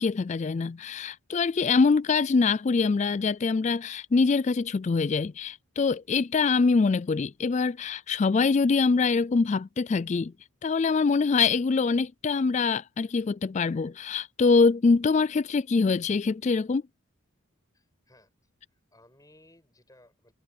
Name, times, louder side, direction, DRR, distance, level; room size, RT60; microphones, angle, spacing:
voice 1, 0.0-10.3 10.6-16.8, left 4 dB, 30° left, 0.3 m, -24 dB
voice 2, 17.7-18.3 18.7-20.3, left 1 dB, 15° left, 7.6 m, -59 dB
head